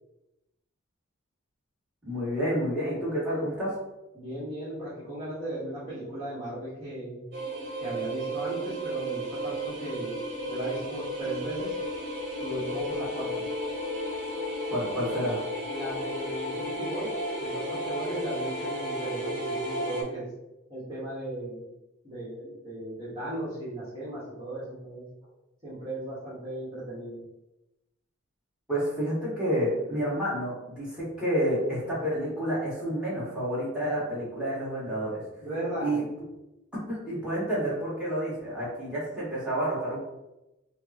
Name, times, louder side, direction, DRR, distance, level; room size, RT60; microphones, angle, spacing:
voice 1, 2.0-3.7 12.8-12.9 14.7-15.4 28.7-35.2 35.8-36.0 36.9-40.0, equal, 5° right, -9 dB, 1.5 m, -29 dB
voice 2, 4.1-7.2 7.7-10.2 10.5-11.7 12.4-13.5 15.7-17.1 17.4-20.3 20.7-21.7 22.0-25.3 25.6-27.2 35.4-36.0, right 1 dB, 25° right, -12 dB, 1.4 m, -36 dB
sound 1, 7.3-20.0, equal, 55° right, 1.1 m, -33 dB
4.9 x 2.1 x 2.8 m, 0.95 s
head